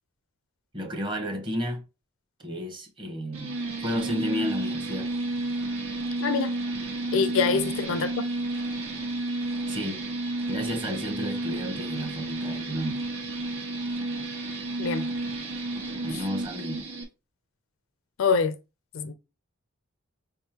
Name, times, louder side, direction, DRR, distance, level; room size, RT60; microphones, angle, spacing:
voice 1, 0.7-1.8 2.4-3.6 3.8-5.1 7.1-7.7 9.7-10.0 10.5-13.0 16.0-16.8, equal, 25° right, 0.9 m, -32 dB
sound 1, 3.3-17.0, right 2 dB, 85° right, 1.4 m, -31 dB
voice 2, 6.2-6.6 7.1-8.3 14.8-15.1 18.2-18.6 18.9-19.1, left 5 dB, 70° left, 0.4 m, -25 dB
5.0 x 3.6 x 2.8 m
head